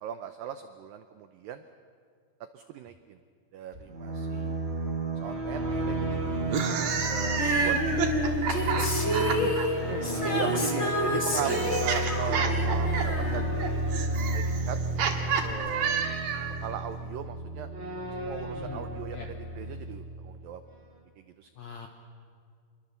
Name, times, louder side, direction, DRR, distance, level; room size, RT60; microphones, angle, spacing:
voice 1, 0.0-1.6 2.5-3.2 3.5-4.6 5.2-6.4 7.1-8.0 8.5-9.1 9.7-13.5 14.3-14.8 15.4-16.1 16.6-17.7 18.2-19.2 19.5-20.6 21.4-21.5, right 10 dB, 85° right, 9 dB, 2.0 m, -39 dB
sound 1, 3.7-20.4, right 2 dB, 25° right, 1.4 m, -32 dB
sound 2, 6.4-9.7 10.7-16.6, right 6 dB, 60° right, 3.2 m, -30 dB
Female singing, 7.4-14.3 15.5-15.6, left 1 dB, 25° left, 1.7 m, -30 dB
voice 2, 9.0-11.7 18.5-18.8 19.1-19.3 21.6-21.9, left 7 dB, 75° left, 4 dB, 1.6 m, -40 dB
27.5 x 22.0 x 7.0 m, 2.2 s
omnidirectional pair, 5.1 m